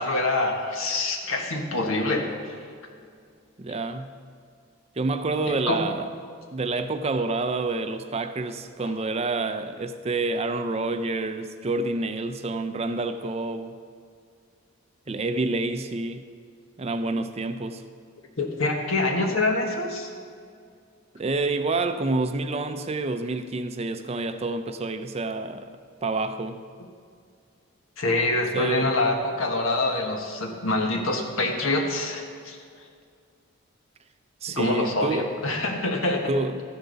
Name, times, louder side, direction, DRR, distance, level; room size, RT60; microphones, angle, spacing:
voice 1, 0.0-2.6 5.5-5.9 18.4-20.1 28.0-32.6 34.5-36.3, left 2 dB, 80° left, 1.5 m, -25 dB
voice 2, 3.6-4.2 5.0-6.1 6.5-13.7 15.1-16.2 16.8-17.8 21.1-25.7 26.0-26.6 28.5-28.9 34.4-35.3 36.3-36.6, right 3 dB, 30° right, 0.5 m, -28 dB
13.5 x 10.0 x 4.0 m
head